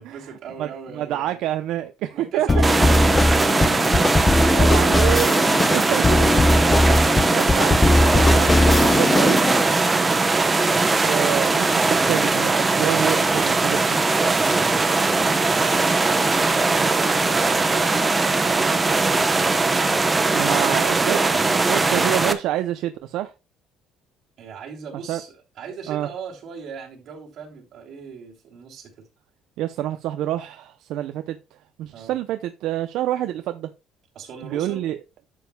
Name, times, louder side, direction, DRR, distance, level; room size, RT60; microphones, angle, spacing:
voice 1, 0.0-1.4 2.1-6.0 9.9-10.3 14.5-18.2 24.4-29.1 31.9-32.2 34.1-34.8, right 6 dB, 50° right, 3.0 m, -40 dB
voice 2, 0.6-2.6 4.5-5.4 5.7-6.3 6.9-9.4 11.0-14.0 20.3-21.4 21.7-23.3 25.1-25.2 25.9-26.1 29.6-31.4 31.8-33.7 34.5-35.0, right 12 dB, 70° right, 0.6 m, -27 dB
sound 1, 2.5-9.6, left 2 dB, 15° left, 0.5 m, -19 dB
sound 2, 2.6-22.3, right 3 dB, 15° right, 0.8 m, -20 dB
11.5 x 7.6 x 2.2 m
cardioid pair, 145°, 0 cm